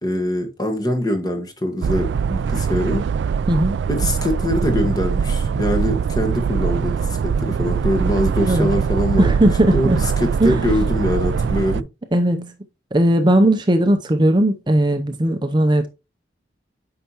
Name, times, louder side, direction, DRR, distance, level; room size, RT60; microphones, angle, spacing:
voice 1, 0.0-3.0 3.9-9.3 9.7-11.8, left 1 dB, 20° left, 1.5 m, -23 dB
sound 1, 1.8-11.8, right 6 dB, 75° right, 0.3 m, -22 dB
voice 2, 3.5-3.8 8.5-8.7 9.2-10.0 10.4-10.6 12.1-12.5 12.9-15.9, right 1 dB, 25° right, 0.6 m, -17 dB
9.0 x 5.7 x 2.9 m
head